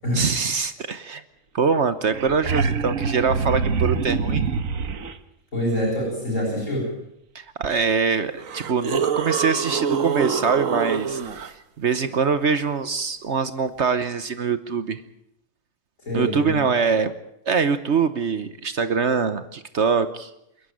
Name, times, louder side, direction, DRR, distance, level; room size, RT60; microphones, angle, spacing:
voice 1, 0.1-1.2 1.5-4.5 7.3-11.2 11.5-15.0 16.1-17.1 17.5-20.3, right 5 dB, 60° right, 11 dB, 1.3 m, -23 dB
sound 1, 1.7-5.1 7.6-7.7 8.4-11.5 14.0-14.1, right 5 dB, 85° right, 1.5 m, -25 dB
voice 2, 5.5-6.9 16.0-16.7, equal, 75° left, -5 dB, 8.6 m, -25 dB
28.0 x 11.5 x 9.2 m, 0.80 s
omnidirectional pair, 1.4 m